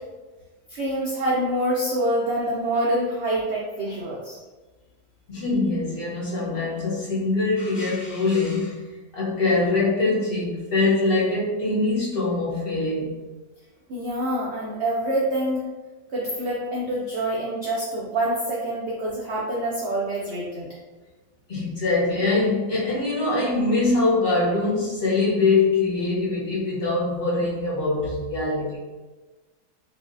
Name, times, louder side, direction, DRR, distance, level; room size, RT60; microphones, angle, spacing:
voice 1, 0.7-4.4 13.9-15.6 16.1-20.7, right 1 dB, 80° right, -5 dB, 0.6 m, -26 dB
voice 2, 5.3-8.8 9.1-13.1 21.5-28.8, left 3 dB, 40° left, -6 dB, 0.9 m, -23 dB
4.6 x 2.0 x 2.5 m, 1.2 s
omnidirectional pair, 1.8 m